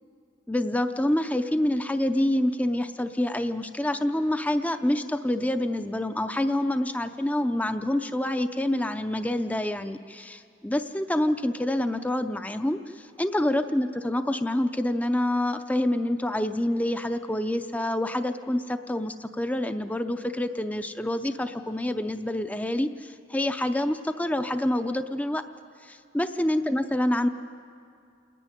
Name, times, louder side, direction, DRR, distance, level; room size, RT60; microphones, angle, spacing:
voice 1, 0.5-25.4 25.8-27.3, left 1 dB, 10° left, 9 dB, 0.5 m, -27 dB
28.5 x 10.0 x 9.8 m, 2.4 s
head